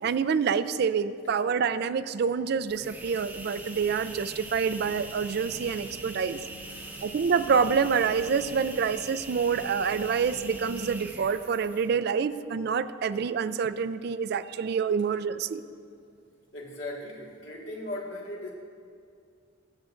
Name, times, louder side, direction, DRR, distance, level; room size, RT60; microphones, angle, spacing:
voice 1, 0.0-6.4 7.0-15.6, right 6 dB, 60° right, 14 dB, 0.4 m, -27 dB
sound 1, 2.6-12.0, right 2 dB, 10° right, 0.7 m, -42 dB
voice 2, 6.6-7.1 16.5-18.5, left 1 dB, 90° left, -2 dB, 1.7 m, -38 dB
21.0 x 7.3 x 2.5 m, 2.3 s
head